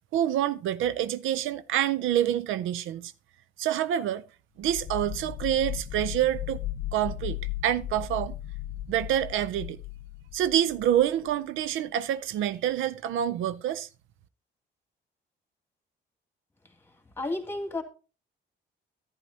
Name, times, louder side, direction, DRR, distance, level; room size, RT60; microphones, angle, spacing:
voice 1, 0.1-3.1 3.6-4.2 4.6-6.6 6.9-7.4 7.6-8.3 8.9-9.8 10.3-13.9, right 11 dB, 80° right, 0.5 m, -27 dB
sound 1, 4.6-11.3, left 13 dB, 70° left, 0.5 m, -36 dB
voice 2, 17.2-17.8, left 2 dB, 10° left, 2.0 m, -31 dB
11.0 x 10.0 x 2.7 m
cardioid pair, 90°, 20 cm